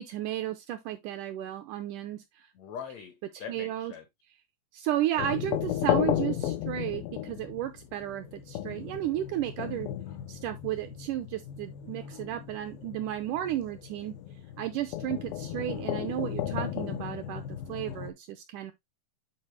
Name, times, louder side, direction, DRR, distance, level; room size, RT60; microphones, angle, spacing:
voice 1, 0.0-2.5 3.3-3.9 4.7-9.9 10.3-14.1 14.6-18.7, right 12 dB, 85° right, 1.8 m, -33 dB
voice 2, 2.5-4.0, left 7 dB, 75° left, 1.6 m, -42 dB
sound 1, 5.2-18.1, left 12 dB, 90° left, 2.5 m, -34 dB
8.6 x 4.1 x 3.1 m
omnidirectional pair, 4.2 m